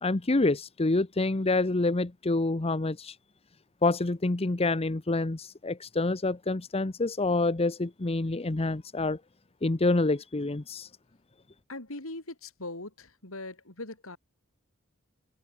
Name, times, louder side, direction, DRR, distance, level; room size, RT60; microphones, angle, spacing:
voice 1, 0.0-3.1 3.8-9.2 9.6-10.9, left 2 dB, 30° left, 0.8 m, -27 dB
voice 2, 11.7-14.2, left 2 dB, 85° left, 5.2 m, -40 dB
head